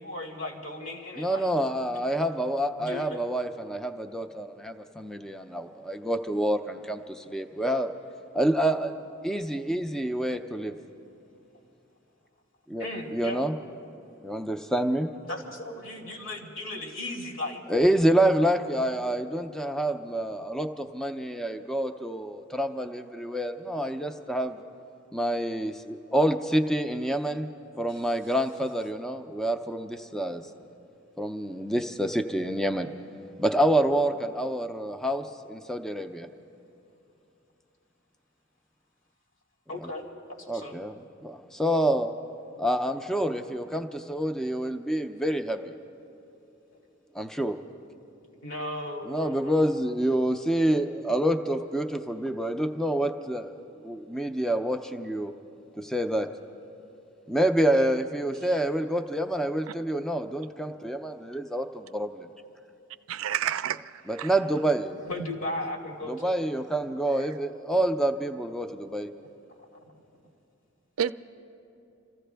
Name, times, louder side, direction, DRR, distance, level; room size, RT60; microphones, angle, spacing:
voice 1, 0.0-1.5 2.8-3.2 12.8-13.4 15.3-17.6 39.7-40.8 48.4-49.7 65.0-66.4 69.8-69.9, left 1 dB, 75° left, 0 dB, 2.3 m, -36 dB
voice 2, 1.2-7.9 8.3-9.0 9.2-10.8 12.7-12.9 13.1-13.5 14.2-15.1 17.7-24.6 25.1-27.5 27.8-30.4 31.2-32.9 33.4-36.3 39.8-39.9 40.5-40.9 41.2-42.1 42.6-45.6 47.1-47.6 49.1-55.3 55.8-56.3 57.3-62.3 64.1-65.0 66.1-69.1, right 1 dB, 5° left, 6 dB, 0.4 m, -27 dB
voice 3, 63.1-64.3 67.2-67.3 71.0-71.1, right 9 dB, 85° right, 13 dB, 0.4 m, -30 dB
27.5 x 14.5 x 3.4 m, 2.7 s
head